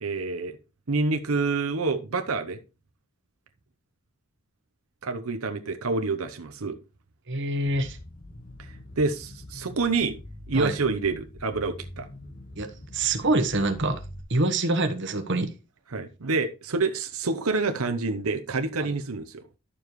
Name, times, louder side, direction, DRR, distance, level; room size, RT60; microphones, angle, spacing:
voice 1, 0.0-0.6 0.9-2.6 5.0-6.8 8.6-10.1 10.5-12.1 15.9-19.4, right 3 dB, 90° right, 0.9 m, -27 dB
voice 2, 7.3-8.0 10.5-10.7 12.6-14.0 14.3-15.5 18.8-18.9, right 2 dB, 55° right, 1.2 m, -25 dB
sound 1, 7.6-14.2, left 1 dB, 40° left, 1.3 m, -44 dB
11.5 x 7.0 x 3.1 m
head